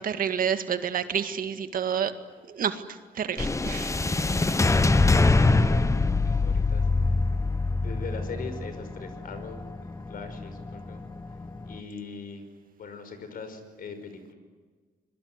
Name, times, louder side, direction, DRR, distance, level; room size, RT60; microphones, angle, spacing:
voice 1, 0.0-2.1 2.5-2.8 3.2-3.9, right 8 dB, 60° right, 9 dB, 2.0 m, -29 dB
sound 1, 3.4-11.8, left 3 dB, 20° left, 1.2 m, -24 dB
voice 2, 4.2-6.9 7.8-11.0 11.6-12.5 12.8-14.3, left 5 dB, 60° left, 9 dB, 5.6 m, -41 dB
25.5 x 22.5 x 9.8 m, 1.5 s
cardioid pair, 95°, 16 cm